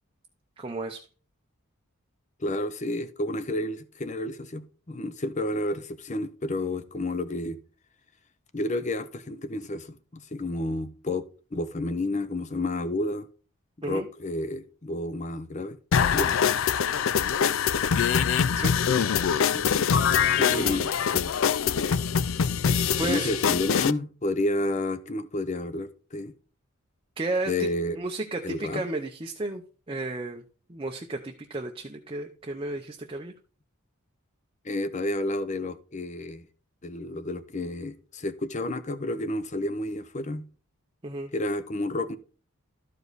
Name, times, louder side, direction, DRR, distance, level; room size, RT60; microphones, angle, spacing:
voice 1, 0.6-1.1 13.8-14.1 18.6-18.8 20.4-20.9 23.0-23.3 27.2-27.7 28.0-29.6 29.9-30.4 30.7-33.3 41.0-41.3, right 2 dB, 25° right, 0.6 m, -33 dB
voice 2, 2.4-7.6 8.5-13.3 13.8-15.8 16.1-16.4 19.5-19.9 20.4-21.3 23.0-26.3 27.5-28.0 28.4-28.8 34.6-36.5 36.8-40.5 41.3-42.2, left 2 dB, 30° left, 0.7 m, -30 dB
sound 1, 15.9-23.9, left 7 dB, 60° left, 0.4 m, -24 dB
12.5 x 5.1 x 4.0 m
head